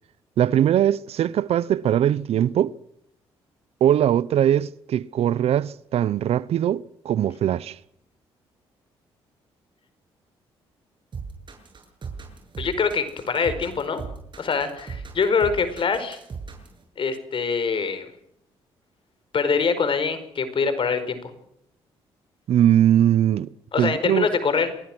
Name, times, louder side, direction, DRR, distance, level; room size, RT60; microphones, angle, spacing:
voice 1, 0.4-2.8 3.8-7.8 22.5-23.5 23.8-24.3, right 10 dB, 70° right, 0.8 m, -21 dB
sound 1, 11.1-16.8, right 5 dB, 45° right, 7.6 m, -37 dB
voice 2, 12.6-14.0 14.4-16.2 17.0-18.1 19.3-21.2 23.7-24.7, left 5 dB, 50° left, 4.9 m, -24 dB
27.5 x 20.5 x 6.3 m
supercardioid pair, 65°, 11 cm